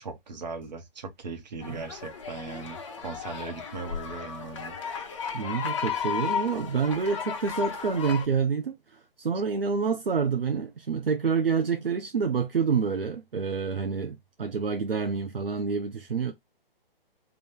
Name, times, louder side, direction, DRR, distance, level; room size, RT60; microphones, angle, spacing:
voice 1, 0.0-4.8, right 4 dB, 45° right, 1.3 m, -39 dB
sound 1, 1.6-8.3, left 7 dB, 30° left, 0.7 m, -34 dB
voice 2, 5.3-16.3, right 5 dB, 70° right, 0.7 m, -28 dB
3.7 x 2.6 x 4.4 m
figure-of-eight pair, 135°, 30 cm